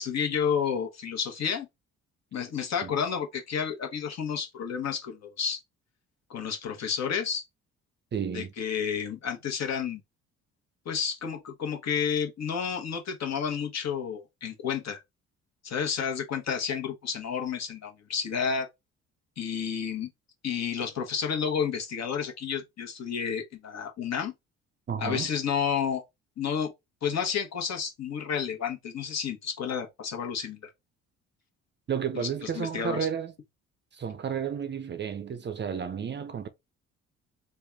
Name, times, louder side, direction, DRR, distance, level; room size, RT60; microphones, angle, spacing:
voice 1, 0.0-1.7 2.3-5.6 6.3-7.4 8.3-10.0 10.8-15.0 15.6-18.7 19.4-20.1 20.4-24.3 25.0-26.0 26.4-26.7 27.0-30.6 32.1-33.1, left 7 dB, 50° left, 1.1 m, -31 dB
voice 2, 8.1-8.5 24.9-25.3 31.9-33.3 33.9-36.5, right 7 dB, 35° right, 0.6 m, -32 dB
3.3 x 2.3 x 3.5 m
hypercardioid pair, 50°, 34 cm